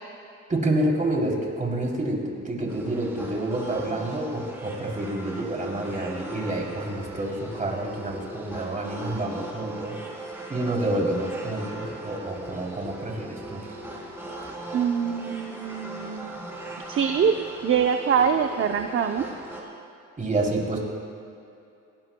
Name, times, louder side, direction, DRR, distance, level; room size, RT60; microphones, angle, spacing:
voice 1, 0.5-10.0 10.5-13.7 20.2-20.8, right 1 dB, 25° right, -1 dB, 3.2 m, -28 dB
sound 1, 2.7-19.6, right 2 dB, 10° right, 3.5 m, -39 dB
voice 2, 14.7-16.4 16.9-17.3 17.6-19.3, right 7 dB, 45° right, 6 dB, 0.6 m, -24 dB
20.0 x 18.0 x 2.3 m, 2.6 s
cardioid pair, 90°, 30 cm